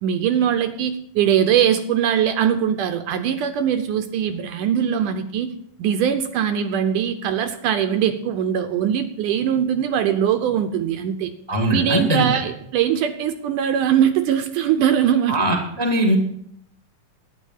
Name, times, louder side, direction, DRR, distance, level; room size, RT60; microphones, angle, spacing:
voice 1, 0.0-5.5 5.8-11.3 11.7-15.4, right 9 dB, 75° right, 8 dB, 2.1 m, -21 dB
voice 2, 11.5-12.4 15.3-16.2, right 1 dB, 10° left, 3 dB, 1.2 m, -21 dB
12.0 x 9.8 x 7.3 m, 0.70 s
omnidirectional pair, 4.0 m